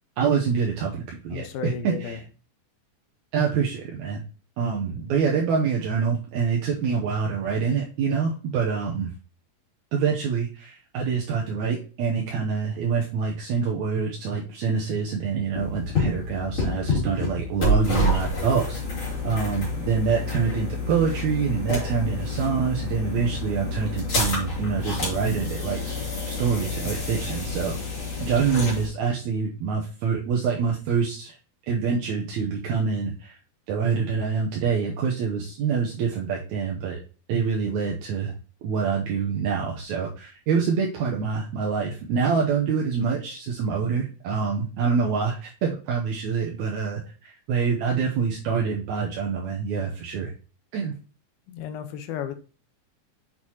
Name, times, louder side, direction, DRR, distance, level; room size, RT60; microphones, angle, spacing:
voice 1, 0.2-2.2 3.3-4.2 4.6-9.1 9.9-18.8 19.2-26.0 26.3-27.8 28.2-31.4 31.7-33.4 33.7-37.0 37.3-38.3 38.6-50.3 50.7-50.9, right 6 dB, 70° right, -2 dB, 1.9 m, -26 dB
voice 2, 1.3-2.2 51.5-52.4, left 8 dB, 90° left, 8 dB, 2.5 m, -33 dB
sound 1, 15.5-28.9, left 2 dB, 35° left, 3.5 m, -28 dB
7.2 x 6.3 x 2.9 m, 0.36 s
omnidirectional pair, 4.2 m